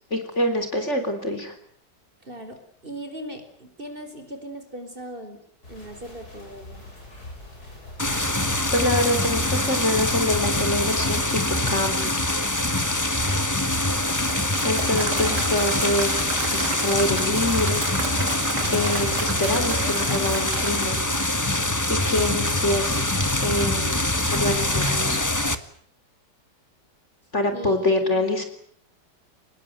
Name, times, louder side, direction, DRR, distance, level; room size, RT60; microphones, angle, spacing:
voice 1, 0.1-1.5 8.7-11.4 11.7-12.2 14.6-16.2 16.5-17.9 18.7-21.0 21.6-23.1 23.4-23.9 24.3-25.2 27.3-28.4, left 1 dB, 40° left, 7 dB, 4.0 m, -25 dB
voice 2, 2.3-5.4 5.7-6.8 27.5-28.4, right 1 dB, 30° right, 7 dB, 4.6 m, -39 dB
sound 1, 5.6-11.4, left 2 dB, 60° left, 8.5 m, -44 dB
sound 2, 8.0-25.6, left 1 dB, 10° left, 1.3 m, -24 dB
Applause / Crowd, 13.7-21.9, right 4 dB, 75° right, 3.5 m, -34 dB
25.5 x 20.5 x 9.2 m, 0.65 s
omnidirectional pair, 1.8 m